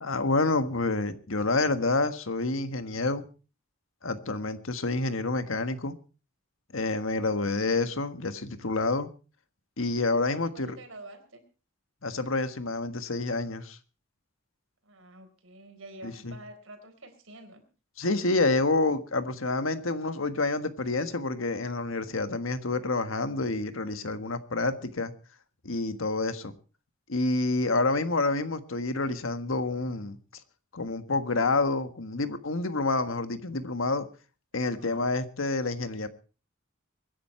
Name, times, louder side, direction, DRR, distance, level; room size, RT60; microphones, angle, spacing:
voice 1, 0.0-3.3 4.0-5.9 6.7-9.1 9.8-10.8 12.0-13.8 16.0-16.3 18.0-25.1 25.6-26.5 27.1-30.2 30.7-34.0 34.5-36.1, left 3 dB, 75° left, 10 dB, 1.5 m, -28 dB
voice 2, 7.2-7.9 10.3-11.4 14.8-17.6 34.5-35.1, right 1 dB, 80° right, 6 dB, 4.1 m, -49 dB
23.5 x 10.5 x 4.4 m, 0.36 s
head